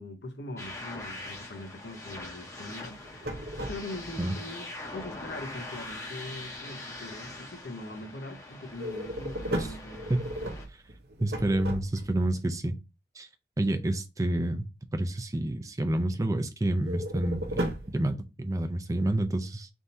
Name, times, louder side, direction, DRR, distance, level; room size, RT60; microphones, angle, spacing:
voice 1, 0.0-3.0 3.7-10.3, left 2 dB, 70° left, 0.8 m, -42 dB
sound 1, 0.6-10.7, left 2 dB, 15° left, 0.8 m, -42 dB
sound 2, 2.9-4.2 8.7-12.3 16.8-18.0, equal, 65° right, 0.7 m, -35 dB
voice 2, 11.2-12.7 13.2-13.3 13.6-14.7 14.9-19.7, right 1 dB, 20° right, 0.4 m, -29 dB
3.5 x 2.7 x 4.2 m
head